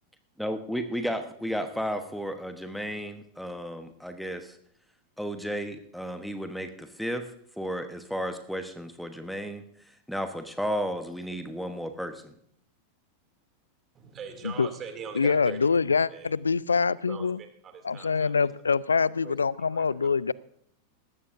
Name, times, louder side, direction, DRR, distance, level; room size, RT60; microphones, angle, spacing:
voice 1, 0.4-4.6 5.2-7.3 7.6-9.6 10.1-12.3, equal, ahead, 8 dB, 1.1 m, -33 dB
voice 2, 13.9-15.8 16.1-16.3 17.1-18.3 19.2-19.3 19.7-20.1, right 6 dB, 25° right, 5 dB, 2.7 m, -41 dB
voice 3, 15.1-17.4 17.8-20.3, left 5 dB, 75° left, 23 dB, 0.4 m, -25 dB
20.0 x 15.5 x 2.6 m, 0.69 s
figure-of-eight pair, 90°, 0 cm